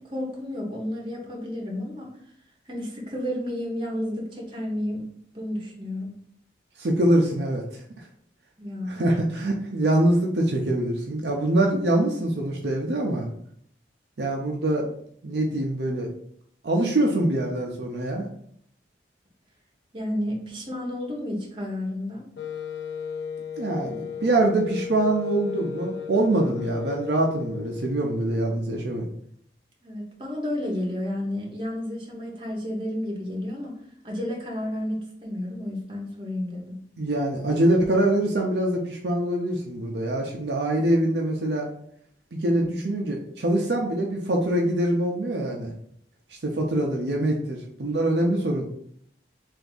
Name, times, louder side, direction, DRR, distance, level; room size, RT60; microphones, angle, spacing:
voice 1, 0.0-2.1 2.7-5.1 5.3-6.1 8.6-9.0 19.9-22.3 29.8-36.8, left 1 dB, 25° right, -3 dB, 0.9 m, -31 dB
voice 2, 6.8-8.1 8.9-13.3 14.2-14.9 15.2-16.1 16.6-18.3 23.6-29.1 37.0-41.7 42.3-45.7 46.3-48.6, right 1 dB, 60° right, 0 dB, 0.5 m, -24 dB
Wind instrument woodwind instrument, 22.4-28.0, left 7 dB, 60° left, 0.4 m, -35 dB
3.4 x 2.6 x 3.9 m, 0.66 s
head